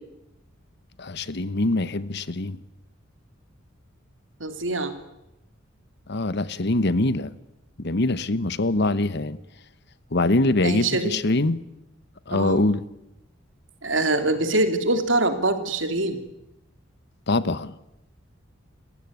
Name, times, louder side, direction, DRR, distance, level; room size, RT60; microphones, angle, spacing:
voice 1, 1.0-2.6 6.1-7.3 7.8-9.4 10.1-11.6 12.3-12.8 17.3-17.7, left 2 dB, 60° left, 16 dB, 1.1 m, -23 dB
voice 2, 4.4-4.9 10.6-11.2 12.3-12.6 13.8-16.2, right 2 dB, 70° right, 8 dB, 3.0 m, -24 dB
28.5 x 16.0 x 9.6 m, 0.89 s
head